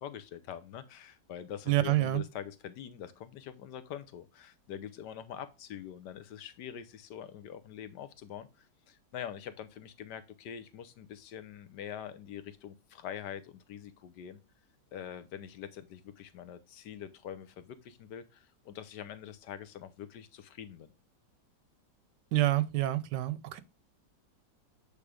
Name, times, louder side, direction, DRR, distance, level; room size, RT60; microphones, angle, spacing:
voice 1, 0.0-14.4 14.9-20.9, left 9 dB, 80° left, 1.3 m, -44 dB
voice 2, 1.7-2.2 22.3-23.6, right 15 dB, 85° right, 1.3 m, -27 dB
8.6 x 3.4 x 4.9 m
omnidirectional pair, 1.8 m